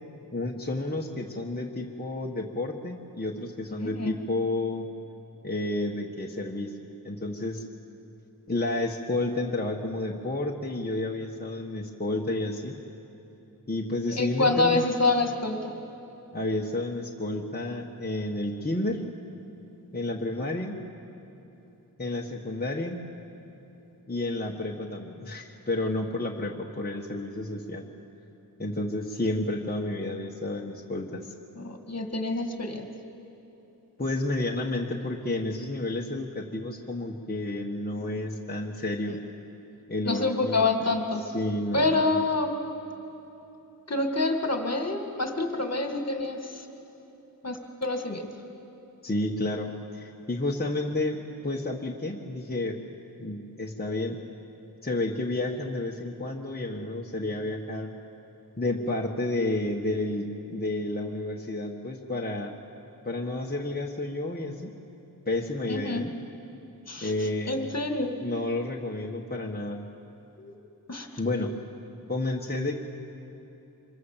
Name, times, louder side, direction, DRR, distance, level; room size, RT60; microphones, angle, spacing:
voice 1, 0.3-4.9 5.4-6.8 7.0-7.6 8.5-12.7 13.7-14.8 16.3-19.0 19.9-20.8 22.0-23.0 24.1-27.9 28.6-31.3 34.0-39.2 39.9-40.9 41.3-42.2 49.0-52.8 53.2-54.2 54.8-57.9 58.6-62.5 63.0-64.8 65.2-66.1 67.0-67.6 68.2-69.8 71.2-71.5 72.1-72.7, left 2 dB, 25° left, -1 dB, 1.5 m, -31 dB
voice 2, 3.7-4.1 14.2-15.7 31.6-32.9 40.0-41.2 41.7-42.5 43.9-46.7 47.4-48.3 65.7-66.0 66.9-68.1 70.4-70.6 70.9-71.1, left 2 dB, 45° left, 4 dB, 2.1 m, -27 dB
25.5 x 22.0 x 7.4 m, 2.9 s
wide cardioid pair, 75°, 37 cm